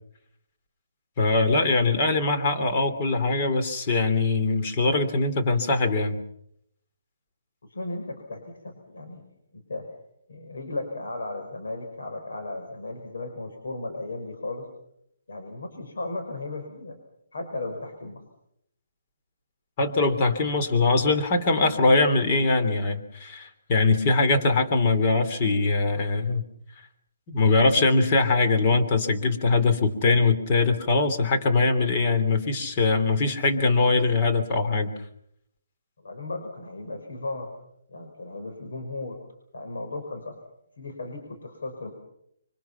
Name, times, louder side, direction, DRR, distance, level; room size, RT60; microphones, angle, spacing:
voice 1, 1.2-6.2 19.8-26.4 27.3-34.9, left 3 dB, 30° left, 6 dB, 3.1 m, -22 dB
voice 2, 7.7-9.2 9.5-9.9 10.3-14.7 15.3-17.0 17.3-18.2 36.0-37.5 37.9-39.2 39.5-40.3 40.8-41.9, left 2 dB, 75° left, 3 dB, 5.7 m, -35 dB
26.0 x 24.5 x 5.9 m, 0.74 s
hypercardioid pair, 160°, 0 cm